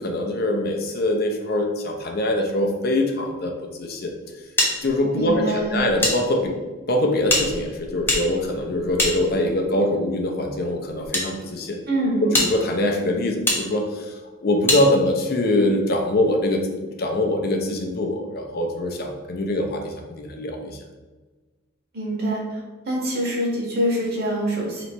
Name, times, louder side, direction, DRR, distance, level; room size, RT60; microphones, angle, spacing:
voice 1, 0.0-4.1 4.8-6.5 6.9-11.8 12.2-14.1 14.4-20.8, left 1 dB, 50° left, 2 dB, 0.5 m, -23 dB
sound 1, 4.6-6.2 6.4-6.5 7.2-9.7 10.5-11.3 11.8-11.9 12.3-12.5 13.5-13.6 14.7-14.8, left 1 dB, 10° left, 0.7 m, -24 dB
voice 2, 5.1-5.8 11.9-12.3 21.9-22.6 22.9-24.9, right 1 dB, 50° right, -3 dB, 1.2 m, -25 dB
3.2 x 3.0 x 4.3 m, 1.3 s
head